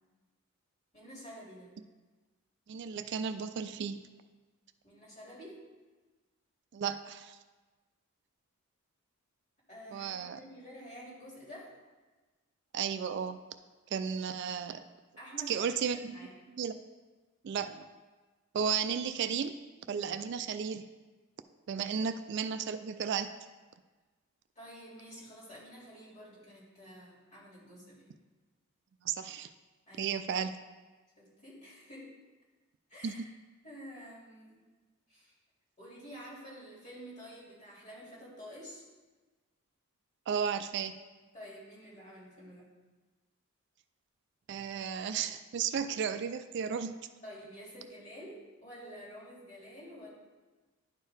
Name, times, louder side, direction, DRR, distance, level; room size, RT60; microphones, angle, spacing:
voice 1, 0.9-1.7 4.8-5.6 9.7-11.7 15.2-16.3 24.6-28.1 29.9-30.1 31.2-32.1 32.9-33.3 33.6-34.7 35.1-35.4 35.8-38.8 41.3-42.7 47.2-50.1, equal, 35° left, -5 dB, 2.3 m, -49 dB
voice 2, 2.7-4.0 6.7-7.4 9.9-10.4 12.7-13.4 13.9-14.8 15.5-16.2 16.6-16.7 17.4-17.8 18.5-19.6 19.9-20.9 21.7-23.3 29.0-29.5 30.0-30.6 33.0-33.3 40.3-41.0 44.5-47.1, right 7 dB, 55° right, 10 dB, 0.3 m, -34 dB
11.0 x 4.6 x 3.3 m, 1.3 s
head